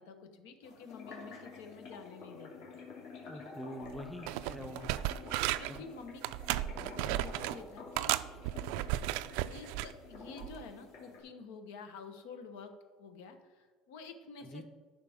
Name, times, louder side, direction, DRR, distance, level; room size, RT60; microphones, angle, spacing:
voice 1, 0.0-2.8 4.5-4.7 5.6-6.2 6.5-8.5 9.5-14.6, left 5 dB, 90° left, 7 dB, 1.1 m, -50 dB
sound 1, 0.6-11.2, left 4 dB, 65° left, 2.4 m, -50 dB
voice 2, 3.3-4.9 5.7-5.9 14.4-14.6, equal, ahead, 6 dB, 0.5 m, -45 dB
sound 2, 3.8-4.0 4.3-5.8 6.2-7.6 8.0-9.9 10.4-10.6, right 15 dB, 75° right, 0.3 m, -34 dB
13.5 x 5.7 x 3.5 m, 1.4 s
cardioid pair, 160°, 0 cm